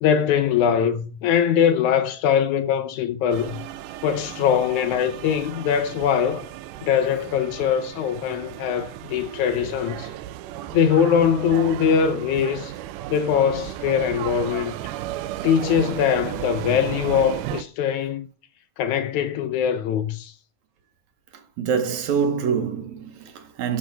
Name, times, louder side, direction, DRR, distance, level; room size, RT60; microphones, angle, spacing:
voice 1, 0.0-3.6 4.0-6.5 6.8-10.1 10.7-12.7 13.1-14.8 15.4-18.3 18.8-20.3, left 8 dB, 75° left, 2.0 m, -22 dB
sound 1, 3.3-17.6, right 13 dB, 85° right, 2.1 m, -34 dB
voice 2, 21.6-23.8, right 6 dB, 70° right, 2.3 m, -25 dB
12.5 x 6.3 x 3.4 m
omnidirectional pair, 3.7 m